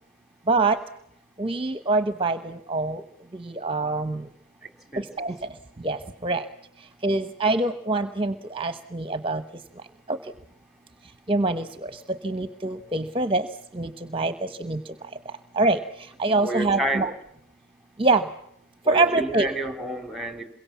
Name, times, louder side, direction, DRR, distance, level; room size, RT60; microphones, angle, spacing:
voice 1, 0.5-0.8 1.4-3.0 3.3-4.2 5.2-5.3 5.8-6.4 7.0-9.4 10.1-10.2 11.3-13.5 13.7-14.8 15.6-15.8 16.2-17.1 18.0-18.2 18.9-19.5, right 3 dB, 30° right, 10 dB, 1.0 m, -24 dB
voice 2, 16.4-17.1 18.8-20.4, right 1 dB, ahead, 7 dB, 3.0 m, -29 dB
27.5 x 23.0 x 7.2 m, 0.77 s
head